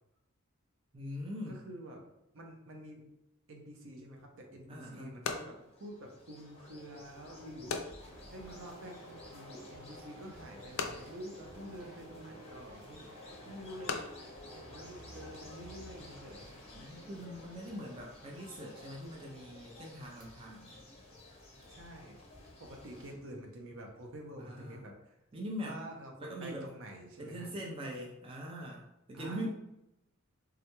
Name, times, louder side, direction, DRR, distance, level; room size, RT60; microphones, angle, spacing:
voice 1, 0.9-1.6 4.7-5.2 16.7-20.8 24.4-24.8 25.3-25.8 26.2-26.7 27.2-29.5, equal, 25° right, -2 dB, 0.4 m, -42 dB
voice 2, 1.5-2.0 2.3-3.0 3.5-7.8 8.3-13.0 13.4-14.0 14.6-16.5 21.7-22.2 22.6-25.2 25.6-27.5 29.1-29.5, right 1 dB, 65° right, 2 dB, 0.6 m, -48 dB
sound 1, 4.2-15.6, left 5 dB, 75° left, 0.4 m, -45 dB
sound 2, 5.5-23.1, left 2 dB, 30° left, 1.0 m, -54 dB
sound 3, 8.0-24.8, equal, 90° right, 1.0 m, -56 dB
3.5 x 2.2 x 2.9 m, 0.88 s
head